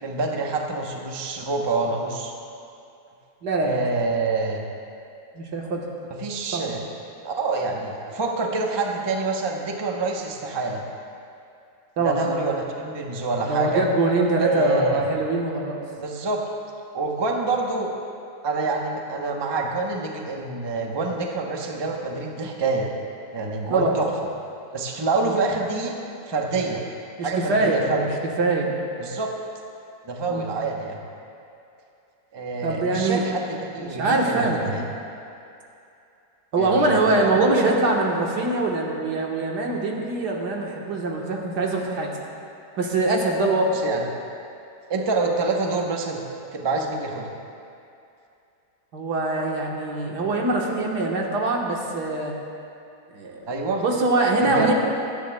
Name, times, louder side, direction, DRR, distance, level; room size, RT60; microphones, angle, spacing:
voice 1, 0.0-2.3 3.6-4.6 6.2-6.8 7.2-10.8 12.0-13.8 14.4-15.1 16.0-16.4 16.9-17.9 18.4-22.9 23.3-24.1 24.7-25.9 26.3-26.8 27.2-28.1 29.0-29.3 30.0-31.0 32.3-34.8 36.6-37.7 43.7-44.1 44.9-46.2 46.5-47.3 53.5-53.8 54.4-54.7, right 3 dB, 25° right, 1 dB, 0.6 m, -26 dB
voice 2, 3.4-3.8 5.3-5.9 6.5-6.8 12.0-12.4 13.4-15.8 23.7-24.0 25.2-25.4 27.2-28.1 28.4-28.7 30.3-30.5 32.6-33.3 33.8-34.7 36.5-42.1 42.8-43.9 48.9-52.3 53.1-53.4 53.8-54.7, right 2 dB, 85° right, -1 dB, 1.8 m, -23 dB
16.5 x 12.5 x 2.2 m, 2.6 s
omnidirectional pair, 1.7 m